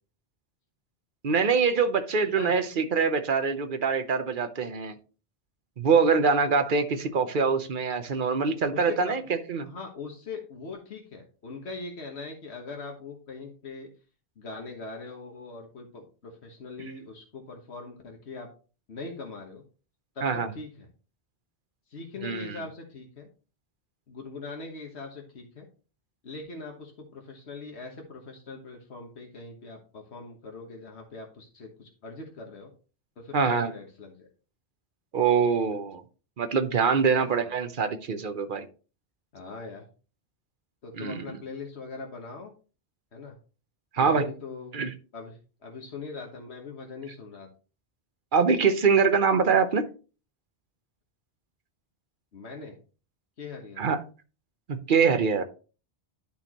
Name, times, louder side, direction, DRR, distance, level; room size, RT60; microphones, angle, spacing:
voice 1, 1.2-4.9 5.8-9.2 9.5-9.7 20.2-20.5 22.2-22.6 33.3-33.7 35.1-36.0 36.4-38.7 41.0-41.2 43.9-44.3 44.7-44.9 48.3-49.8 53.8-54.0 54.7-55.4, right 5 dB, 55° right, 0.9 m, -24 dB
voice 2, 8.7-9.3 9.6-13.9 14.4-18.5 18.9-19.6 20.1-20.9 21.9-23.3 24.1-25.7 26.2-32.7 33.2-34.3 37.2-37.5 39.3-39.8 40.8-42.5 43.1-43.4 44.0-44.7 45.1-47.5 52.3-52.8 53.4-53.9, left 4 dB, 80° left, 1.6 m, -41 dB
11.5 x 4.4 x 2.9 m
omnidirectional pair, 1.1 m